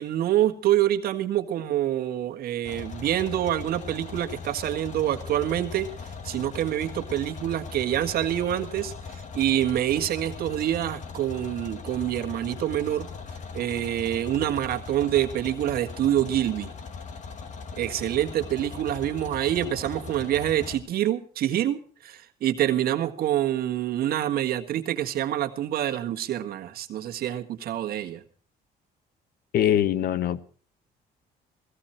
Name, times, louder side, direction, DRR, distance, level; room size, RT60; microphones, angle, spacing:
voice 1, 0.0-5.9 6.2-13.1 13.5-16.7 17.8-28.2, right 12 dB, 65° right, 1.6 m, -26 dB
sound 1, 2.7-20.8, left 5 dB, 45° left, 2.2 m, -39 dB
voice 2, 29.5-30.4, left 10 dB, 65° left, 1.0 m, -23 dB
16.5 x 15.5 x 4.4 m
cardioid pair, 110°, 17 cm